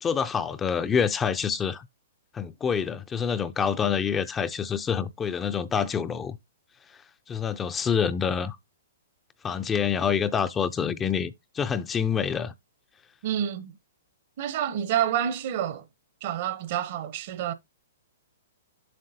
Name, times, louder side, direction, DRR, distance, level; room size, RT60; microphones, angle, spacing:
voice 1, 0.0-1.9 2.3-6.4 7.3-8.6 9.4-12.5, left 7 dB, 15° left, 0.4 m, -27 dB
voice 2, 13.2-13.7 14.4-15.8 16.2-17.5, right 10 dB, 50° right, 0.8 m, -28 dB
7.6 x 6.2 x 2.7 m
hypercardioid pair, 130°, 0 cm